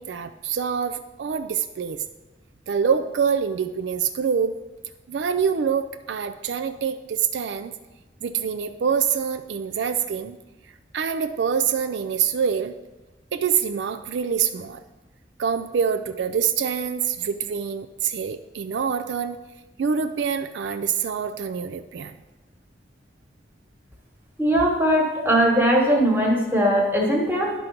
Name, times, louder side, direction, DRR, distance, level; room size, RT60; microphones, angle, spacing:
voice 1, 0.0-2.0 2.7-4.6 5.1-7.7 8.2-10.4 10.9-12.7 13.3-14.8 15.4-19.4 19.8-22.1, right 7 dB, 80° right, 9 dB, 0.4 m, -25 dB
voice 2, 24.4-27.5, equal, 10° right, -1 dB, 1.4 m, -20 dB
10.5 x 3.8 x 5.9 m, 1.1 s
head